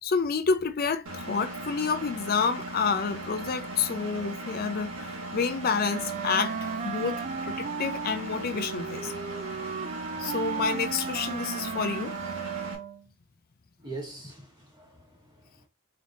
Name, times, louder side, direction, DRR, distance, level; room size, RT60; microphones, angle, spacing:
voice 1, 0.0-9.1 10.2-12.1, left 5 dB, 45° left, 0.5 m, -29 dB
Engine, 1.1-12.8, right 1 dB, 85° right, 1.2 m, -38 dB
Wind instrument woodwind instrument, 5.9-13.1, right 6 dB, 35° right, 0.3 m, -35 dB
voice 2, 13.8-15.7, right 2 dB, 20° right, 1.2 m, -43 dB
3.8 x 3.4 x 2.7 m
head